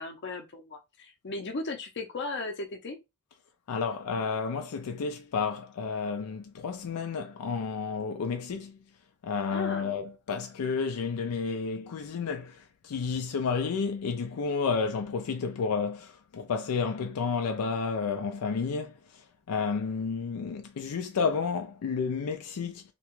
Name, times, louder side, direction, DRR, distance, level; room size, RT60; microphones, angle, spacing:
voice 1, 0.0-3.0 9.5-10.0, left 3 dB, 55° left, 0.7 m, -36 dB
voice 2, 3.7-8.8 9.2-12.6 12.8-18.9 19.5-22.8, left 5 dB, 85° left, 0.4 m, -31 dB
2.9 x 2.3 x 3.0 m
head